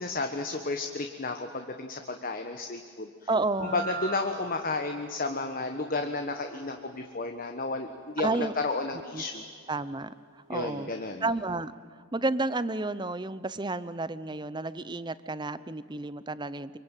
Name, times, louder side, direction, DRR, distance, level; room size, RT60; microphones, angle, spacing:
voice 1, 0.0-3.3 3.6-9.5 10.5-11.2, left 3 dB, 45° left, 5 dB, 1.4 m, -32 dB
voice 2, 3.3-3.9 8.2-8.5 9.1-9.2 9.7-10.9 11.2-11.7 12.1-16.8, right 2 dB, 20° right, 15 dB, 0.7 m, -31 dB
sound 1, 3.4-9.8, right 4 dB, 65° right, 3.8 m, -45 dB
25.5 x 24.5 x 9.1 m, 2.1 s
head